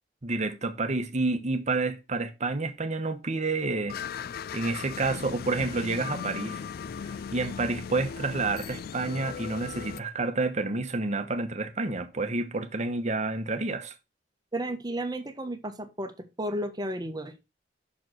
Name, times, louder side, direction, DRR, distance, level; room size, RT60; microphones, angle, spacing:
voice 1, 0.2-4.0 4.5-6.6 7.3-13.9, right 3 dB, 40° right, 1.1 m, -29 dB
sound 1, 3.9-10.0, left 6 dB, 55° left, 0.3 m, -37 dB
voice 2, 14.5-16.1 16.4-17.3, right 1 dB, 20° right, 1.2 m, -33 dB
6.3 x 4.7 x 6.2 m
head